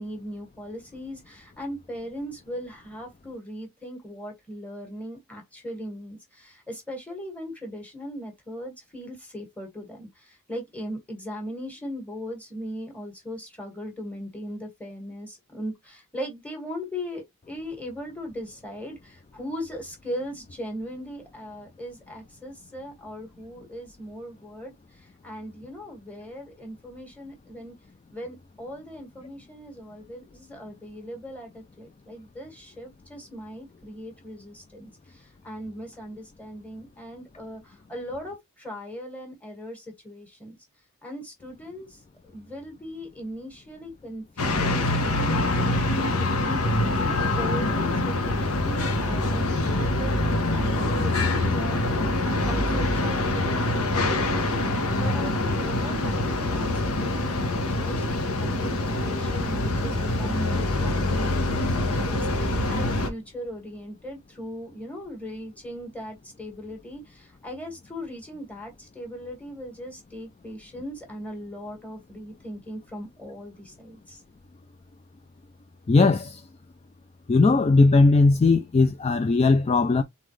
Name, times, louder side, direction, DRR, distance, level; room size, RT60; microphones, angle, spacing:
voice 1, 0.0-27.7 28.1-40.6 41.0-54.6 55.0-58.0 58.4-60.9 61.2-74.2, equal, 5° left, 1.8 m, -39 dB
sound 1, 44.4-63.1, left 2 dB, 80° left, 1.2 m, -25 dB
voice 2, 75.9-76.4 77.3-80.0, left 3 dB, 30° left, 0.3 m, -18 dB
4.0 x 4.0 x 3.1 m
head